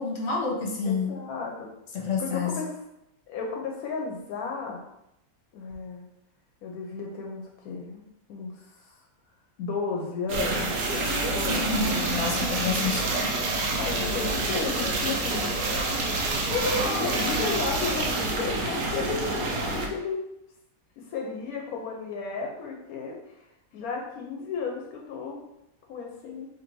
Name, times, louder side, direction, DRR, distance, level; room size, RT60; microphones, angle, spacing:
voice 1, 0.0-1.1 1.9-2.5 11.5-13.3, left 4 dB, 65° left, -2 dB, 1.3 m, -29 dB
voice 2, 0.8-1.7 1.9-2.7 3.3-4.8 5.5-6.1 6.6-9.0 9.6-10.7 11.0-12.4 13.8-15.5 16.5-20.2 21.0-23.5 23.7-25.4 25.9-26.5, left 4 dB, 90° left, 0 dB, 1.1 m, -33 dB
sound 1, 10.3-19.9, right 2 dB, 80° right, 1.1 m, -27 dB
3.2 x 2.6 x 4.4 m, 0.83 s
omnidirectional pair, 1.5 m